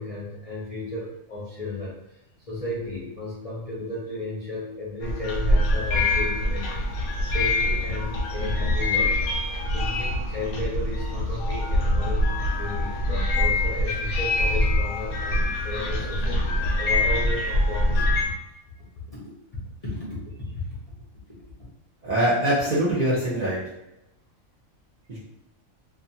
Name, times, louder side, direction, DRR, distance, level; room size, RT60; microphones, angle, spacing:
voice 1, 0.0-1.9 2.5-9.1 9.7-12.3 12.5-18.1 19.1-19.2 19.5-20.1 20.4-20.7, left 2 dB, 40° left, -8 dB, 0.6 m, -34 dB
sound 1, 5.0-18.3, left 1 dB, 75° left, 0.9 m, -24 dB
voice 2, 22.0-23.6 25.1-25.2, right 1 dB, 50° right, -9 dB, 0.5 m, -23 dB
2.3 x 2.3 x 2.7 m, 0.90 s
omnidirectional pair, 1.4 m